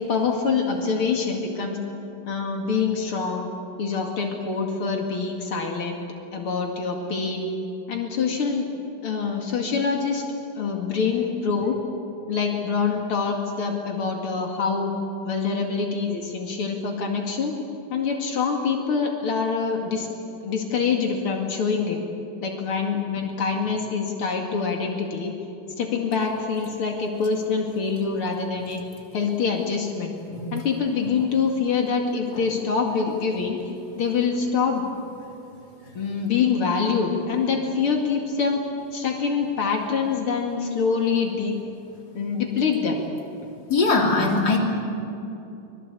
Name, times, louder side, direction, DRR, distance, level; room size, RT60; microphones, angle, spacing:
voice 1, 0.0-1.8 2.3-3.4 3.8-6.0 6.3-7.5 7.9-8.7 9.0-10.2 10.6-11.8 12.3-14.9 15.2-17.5 17.9-20.1 20.4-22.0 22.4-25.3 25.8-28.8 29.1-30.1 30.5-33.6 34.0-34.8 35.9-38.6 38.9-41.5 42.1-43.0, left 5 dB, 85° left, 2 dB, 3.1 m, -25 dB
voice 2, 43.7-44.6, left 3 dB, 50° left, 0 dB, 3.7 m, -21 dB
25.0 x 22.0 x 8.4 m, 2.8 s
omnidirectional pair, 2.3 m